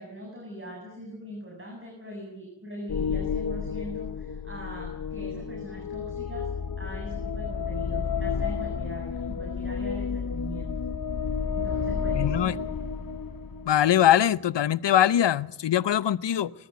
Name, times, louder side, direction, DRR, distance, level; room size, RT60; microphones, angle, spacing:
voice 1, 0.0-6.5 6.8-10.7 11.5-12.8, right 1 dB, 30° right, 0 dB, 7.8 m, -41 dB
sound 1, 2.9-13.7, left 6 dB, 55° left, 1.0 m, -31 dB
voice 2, 12.1-12.5 13.7-16.5, left 11 dB, 80° left, 19 dB, 0.7 m, -22 dB
21.5 x 14.0 x 9.5 m, 0.83 s
cardioid pair, 40°, 42 cm